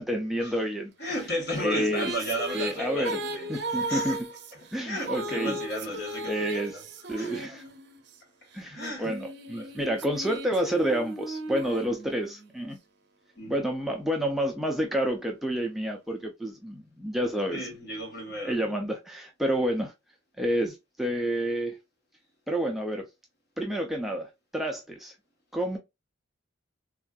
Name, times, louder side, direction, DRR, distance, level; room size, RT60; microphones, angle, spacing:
voice 1, 0.0-0.9 1.6-2.1 2.5-3.2 3.5-4.3 4.7-5.6 6.3-6.8 7.1-7.6 8.5-12.8 13.5-17.7 18.4-19.9 20.4-21.8 22.5-23.1 23.6-25.1 25.5-25.8, equal, ahead, 0.3 m, -29 dB
voice 2, 1.0-4.2 4.8-6.8 7.1-7.4 8.7-9.2 9.5-9.7 13.4-13.7 17.5-18.7, equal, 55° left, 1.2 m, -34 dB
sound 1, 1.2-8.1 8.8-12.5, right 2 dB, 55° right, 0.6 m, -36 dB
3.4 x 2.4 x 2.2 m
head